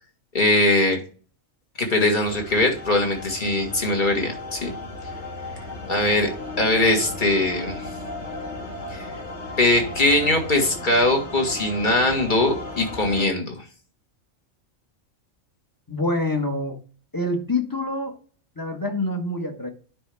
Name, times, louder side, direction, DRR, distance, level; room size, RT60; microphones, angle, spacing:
voice 1, 0.3-1.0 1.8-4.7 5.9-6.3 6.6-7.9 8.9-9.0 9.6-13.6, left 2 dB, 35° left, 3 dB, 1.9 m, -21 dB
sound 1, 2.2-13.3, left 2 dB, 55° left, 2.2 m, -35 dB
voice 2, 15.9-16.8 17.1-18.2 18.6-19.7, left 2 dB, 15° left, 3 dB, 1.3 m, -26 dB
10.0 x 5.3 x 3.5 m, 0.40 s
omnidirectional pair, 1.4 m